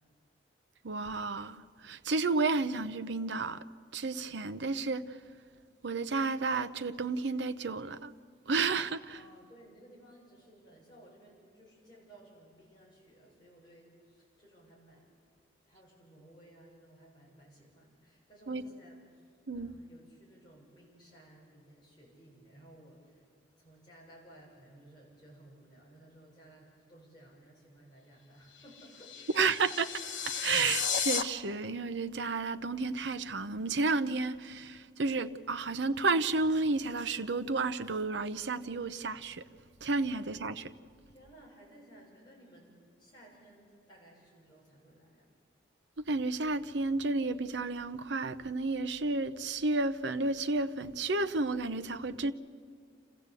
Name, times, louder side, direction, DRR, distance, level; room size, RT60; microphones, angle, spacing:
voice 1, 0.8-3.6 3.9-5.0 5.8-8.1 8.5-9.2 18.5-18.6 19.5-19.8 29.3-29.9 30.3-39.4 39.8-40.7 46.1-52.3, right 3 dB, 75° right, 0.7 m, -31 dB
voice 2, 9.1-15.1 15.6-23.2 23.6-29.2 41.1-45.3, right 1 dB, 25° left, 7.5 m, -57 dB
sound 1, 28.5-31.2, left 7 dB, 75° left, 1.2 m, -34 dB
27.5 x 15.0 x 8.3 m
head